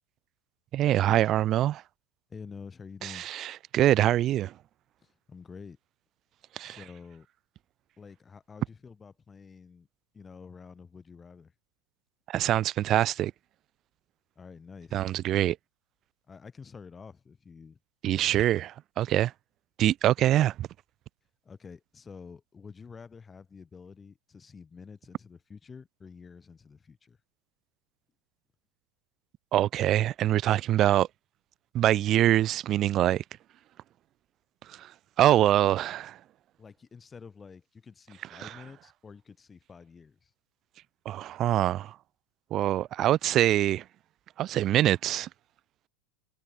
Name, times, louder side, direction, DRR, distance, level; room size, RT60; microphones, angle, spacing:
voice 1, 0.7-1.8 3.0-4.5 6.6-6.8 12.3-13.3 14.9-15.6 18.0-19.3 19.8-20.7 29.5-31.1 31.7-33.2 34.8-34.9 35.2-36.2 38.4-38.5 41.1-41.9 42.5-43.8 44.4-45.3, right 13 dB, 35° right, 0.5 m, -24 dB
voice 2, 2.3-3.3 5.0-5.8 6.6-7.3 8.0-9.9 10.1-11.5 14.4-15.1 16.3-17.8 21.4-27.2 36.6-40.3, left 5 dB, 20° left, 7.1 m, -48 dB
figure-of-eight pair, 85°, 0 cm